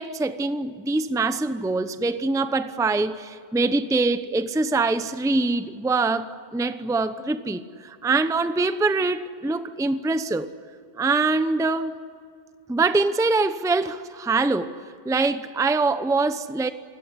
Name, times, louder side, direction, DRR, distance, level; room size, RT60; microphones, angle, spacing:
voice 1, 0.0-10.5 11.0-12.0 12.7-16.7, right 3 dB, 5° right, 11 dB, 0.7 m, -24 dB
28.5 x 17.0 x 9.8 m, 2.2 s
omnidirectional pair, 1.2 m